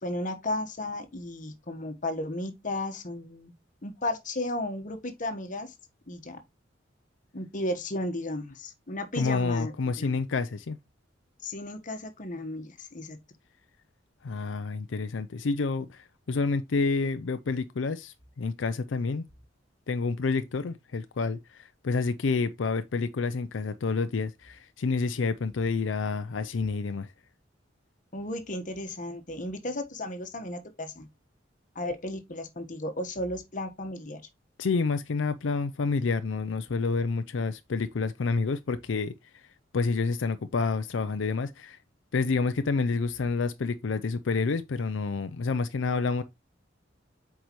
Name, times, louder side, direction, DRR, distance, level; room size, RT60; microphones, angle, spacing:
voice 1, 0.0-3.5 3.8-5.7 6.1-6.4 7.3-9.7 10.0-10.2 11.4-13.2 28.1-31.1 31.7-34.2, left 1 dB, 45° left, 1.3 m, -34 dB
voice 2, 9.2-10.8 14.2-19.3 19.9-27.1 34.6-39.4 39.7-41.8 42.1-46.2, left 4 dB, 85° left, 0.5 m, -29 dB
8.0 x 4.7 x 3.0 m
head